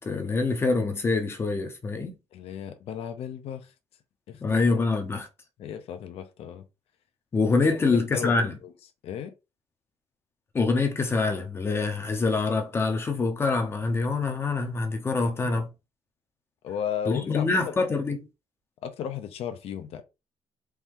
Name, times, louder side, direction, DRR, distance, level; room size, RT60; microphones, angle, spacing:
voice 1, 0.0-2.1 4.4-5.3 7.3-8.5 10.5-15.7 17.1-18.2, left 3 dB, 20° left, 0.7 m, -25 dB
voice 2, 2.3-3.7 4.3-4.7 5.6-6.6 8.1-8.7 9.0-9.3 15.2-15.6 16.6-17.8 18.8-20.0, left 8 dB, 55° left, 0.7 m, -35 dB
4.6 x 2.8 x 3.7 m
cardioid pair, 180°, 12 cm